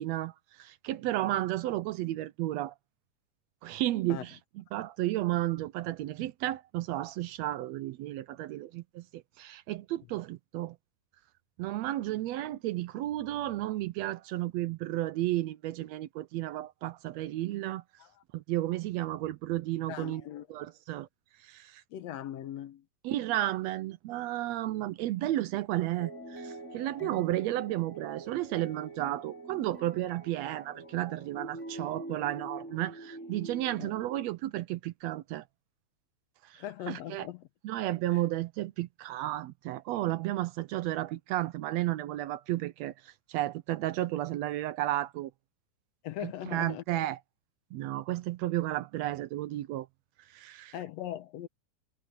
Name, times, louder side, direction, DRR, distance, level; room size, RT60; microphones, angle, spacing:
voice 1, 0.0-2.7 3.6-10.8 11.6-17.8 18.3-20.2 20.5-21.1 21.4-21.8 23.0-35.4 36.4-37.3 37.6-45.3 46.2-47.2 47.7-49.9 50.3-50.7, right 15 dB, 80° right, 1.7 m, -33 dB
voice 2, 19.9-20.5 21.9-22.8 27.0-27.2 33.8-33.9 36.6-37.4 38.1-38.2 46.0-46.8 50.7-51.5, left 11 dB, 70° left, 1.9 m, -39 dB
sound 1, 26.0-34.3, right 2 dB, 25° left, 7.0 m, -45 dB
omnidirectional pair, 3.3 m